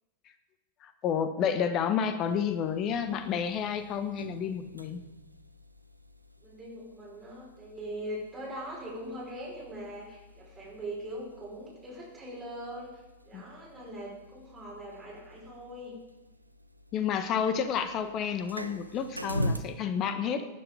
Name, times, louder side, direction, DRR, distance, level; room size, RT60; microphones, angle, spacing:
voice 1, 0.8-5.0 13.3-13.4 16.9-20.4, left 7 dB, 35° left, 10 dB, 1.3 m, -30 dB
sound 1, 2.2-19.6, equal, 85° right, 0.7 m, -43 dB
voice 2, 6.4-16.0 20.1-20.5, equal, 15° right, -6 dB, 5.9 m, -41 dB
17.5 x 9.2 x 5.3 m, 1.1 s
figure-of-eight pair, 90°, 0 cm